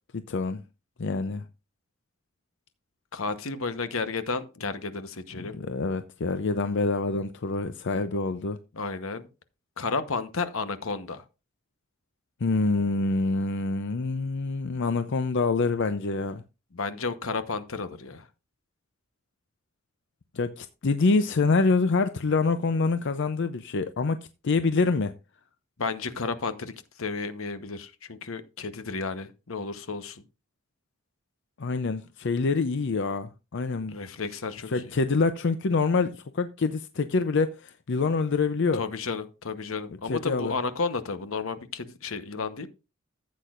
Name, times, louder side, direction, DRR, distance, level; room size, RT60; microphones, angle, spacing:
voice 1, 0.1-0.6 1.0-1.4 5.4-8.6 12.4-16.4 20.3-24.2 24.4-25.1 31.6-34.0 34.7-38.8 40.1-40.5, left 3 dB, 60° left, 0.6 m, -26 dB
voice 2, 3.1-5.6 8.7-9.3 9.8-11.2 16.7-18.3 25.8-26.7 27.0-30.2 33.9-34.9 38.7-42.7, left 4 dB, 80° left, 1.0 m, -32 dB
14.5 x 8.3 x 2.5 m
head